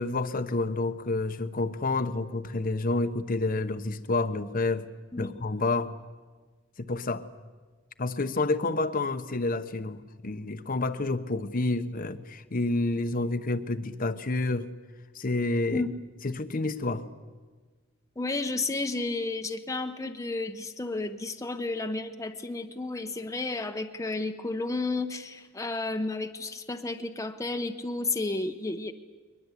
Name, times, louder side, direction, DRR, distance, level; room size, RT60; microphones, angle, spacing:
voice 1, 0.0-4.9 5.2-5.9 6.8-7.2 8.0-14.7 15.1-15.8 16.2-17.0, left 2 dB, 45° left, 9 dB, 0.9 m, -29 dB
voice 2, 18.2-28.9, left 2 dB, 15° left, 6 dB, 0.9 m, -32 dB
22.0 x 20.5 x 8.3 m, 1.4 s
head